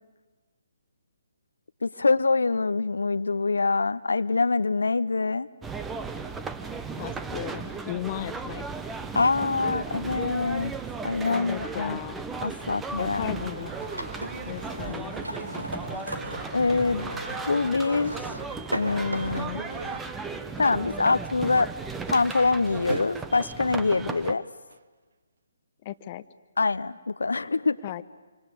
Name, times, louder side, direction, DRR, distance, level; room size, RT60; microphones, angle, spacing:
voice 1, 1.8-5.5 9.1-10.7 11.0-12.0 12.4-13.5 14.8-14.9 15.2-15.3 16.5-17.1 17.4-18.1 18.7-19.6 20.6-21.7 22.1-24.4 26.6-27.8, left 3 dB, 75° left, 14 dB, 0.8 m, -25 dB
sound 1, 5.6-24.3, right 4 dB, 10° right, 1.1 m, -36 dB
voice 2, 7.0-8.7 11.3-12.2 13.0-13.7 14.5-15.2 25.8-26.2 27.8-28.0, left 13 dB, 35° left, 12 dB, 0.9 m, -35 dB
sound 2, 13.0-20.0, right 1 dB, 90° right, 3.6 m, -37 dB
sound 3, 19.7-20.1 20.4-20.9 21.4-21.5 21.7-22.2 22.9-25.4, right 5 dB, 60° right, 0.9 m, -40 dB
27.0 x 25.5 x 8.6 m, 1.4 s
figure-of-eight pair, 140°, 0 cm